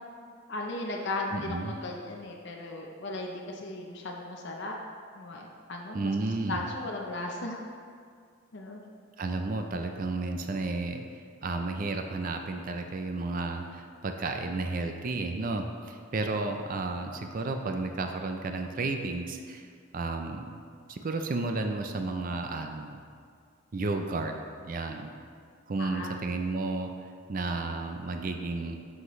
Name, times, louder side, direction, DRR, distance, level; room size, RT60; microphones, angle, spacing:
voice 1, 0.5-4.8 5.2-6.1 6.5-7.6 8.5-8.8 25.8-26.2, left 2 dB, 55° left, 0 dB, 0.6 m, -36 dB
voice 2, 1.3-1.7 5.9-6.6 9.2-20.5 20.9-23.0 23.7-24.3 24.6-25.1 25.7-26.9 27.3-28.8, right 3 dB, 40° right, 5 dB, 0.4 m, -32 dB
7.8 x 5.8 x 3.1 m, 2.2 s
head